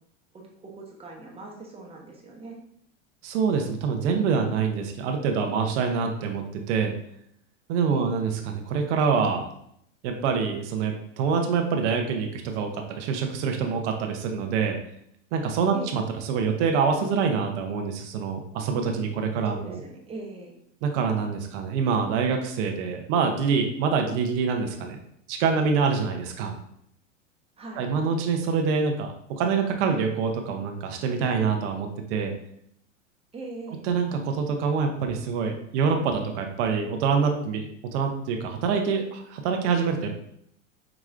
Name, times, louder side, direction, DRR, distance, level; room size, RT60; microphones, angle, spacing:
voice 1, 0.3-2.6 7.9-8.2 15.7-16.0 19.4-20.5 27.6-27.8 33.3-33.8, right 2 dB, 15° right, -2 dB, 1.0 m, -40 dB
voice 2, 3.2-6.9 7.7-9.4 10.0-14.8 15.3-16.0 16.3-19.8 20.8-25.0 25.3-26.6 27.8-32.3 33.8-37.6 37.9-40.2, right 5 dB, 60° right, 4 dB, 0.8 m, -25 dB
4.9 x 3.0 x 2.4 m, 0.70 s
hypercardioid pair, 105°, 38 cm